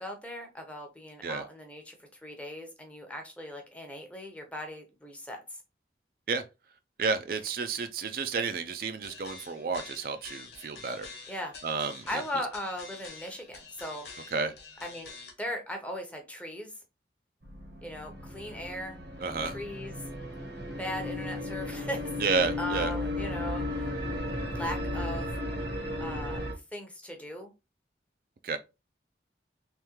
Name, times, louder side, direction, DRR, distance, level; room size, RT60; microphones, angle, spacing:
voice 1, 0.0-5.6 11.3-11.5 12.1-14.1 14.8-16.7 17.8-19.0 19.4-20.0 20.8-23.9 24.5-25.3 26.0-26.4 26.7-27.5, left 1 dB, 5° left, 0.7 m, -38 dB
voice 2, 7.0-11.1 11.6-12.0 14.3-14.5 19.2-19.6 22.2-22.9 28.4-28.6, right 4 dB, 50° right, 0.4 m, -31 dB
sound 1, 9.0-15.3, left 4 dB, 75° left, 1.1 m, -47 dB
sound 2, 17.4-26.5, left 1 dB, 80° right, 1.0 m, -35 dB
3.5 x 3.2 x 3.0 m
head